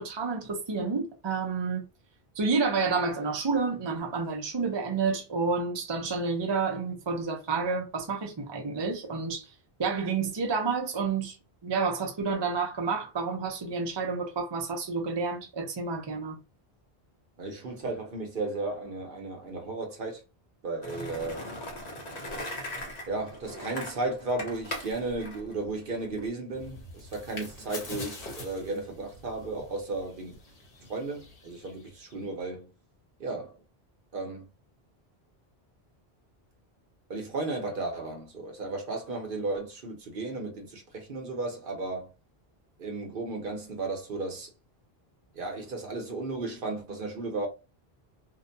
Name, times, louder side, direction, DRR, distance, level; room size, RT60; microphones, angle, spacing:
voice 1, 0.0-1.9 2.4-9.5 9.8-11.4 11.6-16.4, right 4 dB, 35° right, 0.5 m, -29 dB
voice 2, 17.4-20.2 20.6-21.4 23.1-30.4 30.8-32.7 33.2-33.6 34.1-34.5 37.1-42.1 42.8-44.5 45.3-47.5, right 2 dB, 60° right, 0.9 m, -34 dB
Skateboard, 20.8-26.3, left 1 dB, 45° left, 0.8 m, -39 dB
sound 1, 26.5-32.3, left 2 dB, 60° left, 1.1 m, -45 dB
2.5 x 2.1 x 2.6 m
omnidirectional pair, 1.0 m